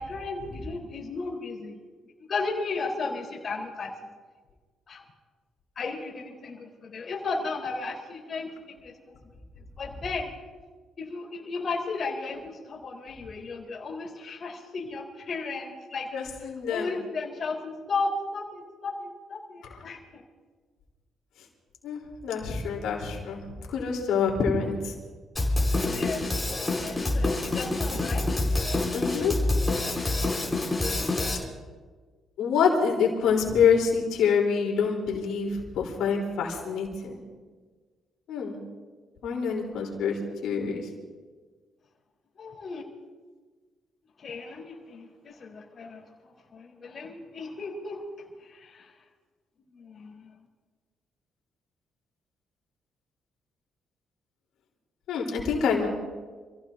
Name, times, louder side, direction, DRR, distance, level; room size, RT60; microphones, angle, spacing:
voice 1, 0.0-1.8 2.3-3.9 4.9-5.0 5.8-8.5 8.8-9.1 9.8-10.3 11.0-16.1 16.7-20.2 25.8-26.5 26.8-28.3 42.4-42.8 44.2-46.0 46.5-48.0 48.5-48.9 49.7-50.3, left 3 dB, 50° left, -1 dB, 4.1 m, -34 dB
voice 2, 16.1-16.9 21.8-23.4 23.7-24.9 28.9-29.3 32.4-37.2 38.3-38.6 39.2-40.2 40.4-40.8 55.1-55.9, left 6 dB, 85° left, -1 dB, 3.9 m, -26 dB
Drum kit, 25.4-31.4, left 2 dB, 15° left, 4.6 m, -27 dB
28.5 x 16.0 x 2.8 m, 1.4 s
cardioid pair, 90°, 0 cm